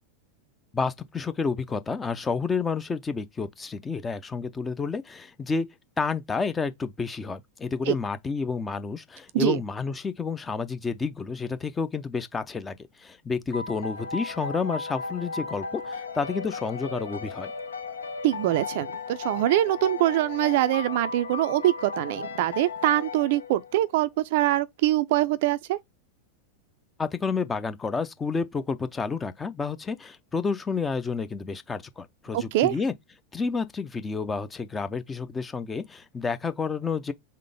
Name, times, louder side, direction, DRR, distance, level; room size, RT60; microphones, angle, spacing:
voice 1, 0.7-5.7 6.0-17.5 27.0-32.9 33.3-37.1, left 5 dB, 15° left, 0.5 m, -30 dB
sound 1, 13.5-23.9, left 4 dB, 70° left, 0.6 m, -36 dB
voice 2, 18.2-25.8 32.3-32.8, right 14 dB, 50° right, 0.4 m, -24 dB
3.8 x 3.2 x 3.5 m
figure-of-eight pair, 90°, 0 cm